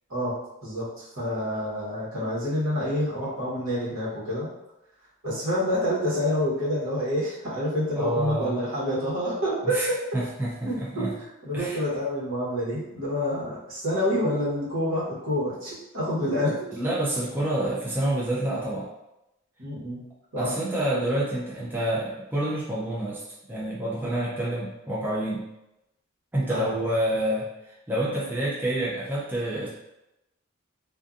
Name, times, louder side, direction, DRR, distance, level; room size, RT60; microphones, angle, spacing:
voice 1, 0.1-4.5 5.2-10.0 10.6-11.1 11.4-16.8 19.6-20.0 20.3-20.5 26.5-26.7, equal, 80° right, -8 dB, 1.2 m, -28 dB
voice 2, 8.0-8.6 9.7-9.9 10.1-11.1 11.5-11.8 16.7-18.9 20.4-23.2 23.5-25.5 26.3-29.7, right 1 dB, 10° right, -7 dB, 0.4 m, -28 dB
2.5 x 2.5 x 2.4 m, 0.91 s
head